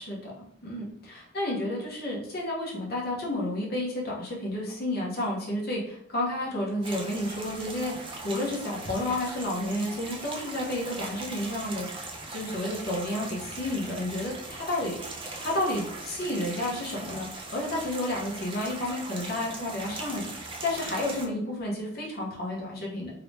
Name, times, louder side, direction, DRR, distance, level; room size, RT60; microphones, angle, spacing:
voice 1, 0.0-15.0 15.4-23.1, left 1 dB, 55° left, -4 dB, 1.0 m, -31 dB
sound 1, 6.8-21.3, right 3 dB, 30° right, 0.4 m, -40 dB
2.9 x 2.8 x 3.2 m, 0.75 s
head